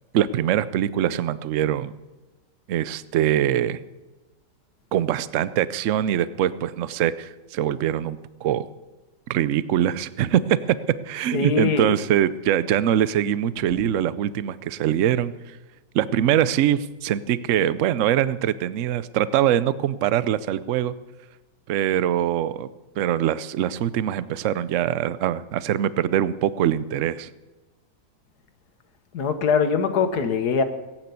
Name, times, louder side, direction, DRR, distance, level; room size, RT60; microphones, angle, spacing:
voice 1, 0.1-1.9 2.7-3.8 4.9-8.7 9.3-10.6 11.1-15.3 15.9-20.9 21.7-22.7 23.0-27.3, right 11 dB, 65° right, 16 dB, 0.7 m, -23 dB
voice 2, 11.3-12.0 29.1-30.6, left 5 dB, 60° left, 9 dB, 1.7 m, -22 dB
16.5 x 9.1 x 8.3 m, 1.1 s
omnidirectional pair, 1.9 m